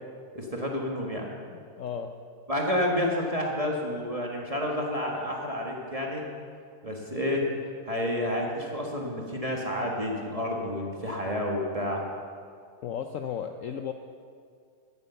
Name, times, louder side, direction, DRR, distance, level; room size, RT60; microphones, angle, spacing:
voice 1, 0.3-1.3 2.5-6.3 6.8-7.5 7.9-12.0, left 1 dB, 25° right, -1 dB, 1.4 m, -30 dB
voice 2, 1.5-2.1 12.8-13.9, left 8 dB, 65° left, 6 dB, 0.8 m, -34 dB
12.5 x 9.7 x 6.9 m, 2.2 s
omnidirectional pair, 1.7 m